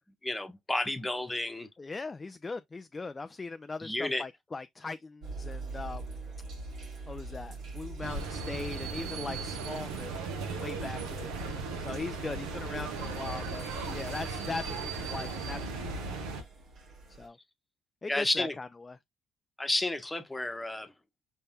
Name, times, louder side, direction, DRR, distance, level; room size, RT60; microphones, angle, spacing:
voice 1, 0.2-1.7 3.8-4.2 18.1-18.5 19.6-20.9, left 2 dB, 15° left, 1.1 m, -31 dB
voice 2, 1.8-6.1 7.1-10.2 10.6-11.3 11.8-15.7 16.0-16.2 17.2-17.4 18.0-19.0, left 3 dB, 30° left, 0.4 m, -40 dB
sound 1, 5.2-17.3, right 3 dB, 65° right, 1.7 m, -46 dB
sound 2, 8.0-16.4, right 4 dB, 85° right, 1.1 m, -36 dB
5.4 x 3.4 x 2.7 m
hypercardioid pair, 55°, 0 cm